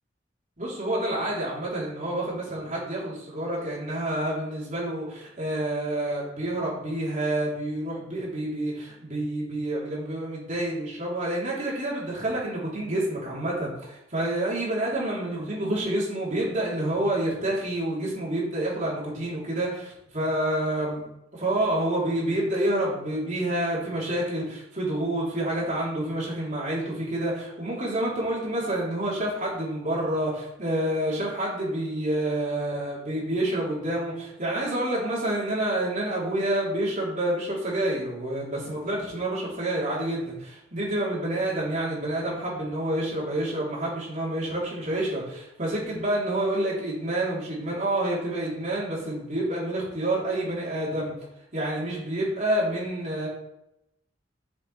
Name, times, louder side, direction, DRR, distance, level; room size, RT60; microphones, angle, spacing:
voice 1, 0.6-21.0 21.3-51.1 51.5-53.3, right 1 dB, 40° right, -6 dB, 3.8 m, -28 dB
7.7 x 6.0 x 5.1 m, 0.82 s
head